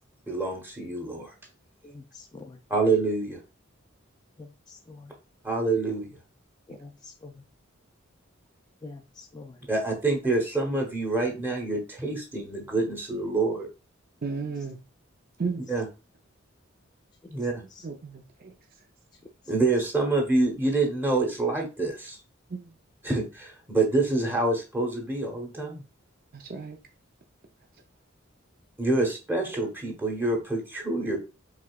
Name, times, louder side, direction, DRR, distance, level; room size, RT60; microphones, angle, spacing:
voice 1, 0.3-1.3 2.7-3.4 5.4-6.1 9.7-13.7 15.7-15.9 17.3-17.5 19.5-22.2 23.0-25.8 28.8-31.2, right 2 dB, 10° right, 1.0 m, -26 dB
voice 2, 1.8-2.6 4.4-5.1 6.7-7.4 8.8-9.6 17.7-17.9, left 3 dB, 20° left, 0.3 m, -46 dB
voice 3, 14.2-14.8 15.4-15.7 17.8-18.5 22.5-22.7 26.3-26.8, right 4 dB, 45° right, 0.5 m, -34 dB
4.9 x 3.6 x 2.3 m
head